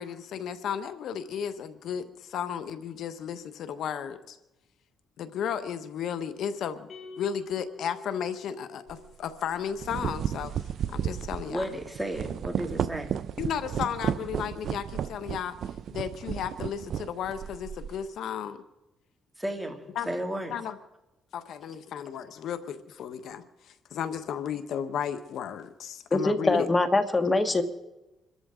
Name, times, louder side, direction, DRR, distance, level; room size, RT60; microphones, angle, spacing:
voice 1, 0.0-4.4 5.2-6.9 7.2-10.5 10.9-11.7 13.4-15.6 15.9-18.6 20.0-20.1 20.5-20.8 21.3-26.7, left 8 dB, 75° left, 11 dB, 1.1 m, -34 dB
sound 1, 6.9-9.4, left 4 dB, 55° left, 5.2 m, -46 dB
sound 2, 8.9-9.1 9.6-18.0, right 8 dB, 65° right, 0.5 m, -33 dB
voice 2, 11.4-13.1 19.4-20.5, right 1 dB, 10° right, 4 dB, 2.6 m, -33 dB
voice 3, 26.1-27.6, left 2 dB, 20° left, 9 dB, 1.6 m, -23 dB
26.5 x 13.5 x 3.8 m, 0.99 s
cardioid pair, 90°, 0 cm